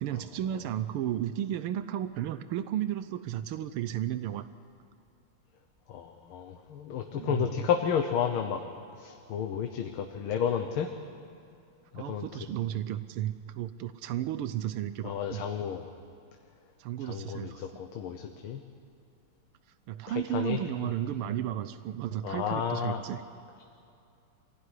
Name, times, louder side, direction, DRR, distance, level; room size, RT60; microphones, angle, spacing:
voice 1, 0.0-4.5 7.1-7.7 11.9-15.4 16.8-17.8 19.9-23.2, right 11 dB, 85° right, 12 dB, 1.6 m, -33 dB
voice 2, 5.9-8.6 9.0-10.9 11.9-12.3 15.0-15.9 17.0-18.6 20.1-20.6 22.2-23.0, left 8 dB, 75° left, 5 dB, 1.9 m, -31 dB
24.5 x 16.0 x 9.9 m, 2.5 s
omnidirectional pair, 2.3 m